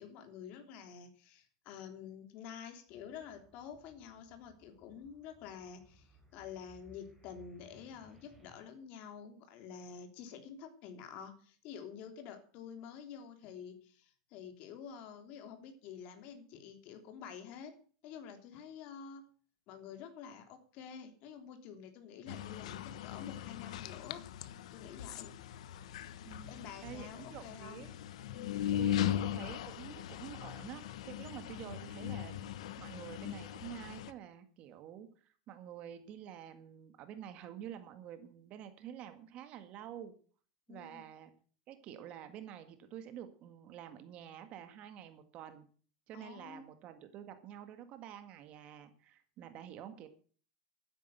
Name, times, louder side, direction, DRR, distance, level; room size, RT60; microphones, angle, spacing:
voice 1, 0.0-17.7 18.0-19.2 19.7-24.2 24.7-25.3 26.5-27.9 28.3-29.2 40.7-41.1 46.1-46.6, left 7 dB, 45° left, 6 dB, 3.3 m, -49 dB
sound 1, 2.9-8.6, right 1 dB, ahead, 4.0 m, -64 dB
sound 2, 22.3-34.1, left 11 dB, 85° left, 1.1 m, -39 dB
voice 2, 26.2-27.9 28.8-32.5 32.8-40.1 40.7-41.3 41.7-45.7 46.1-50.1, right 10 dB, 40° right, 9 dB, 1.8 m, -49 dB
12.5 x 10.0 x 7.9 m, 0.43 s
supercardioid pair, 155°, 3 cm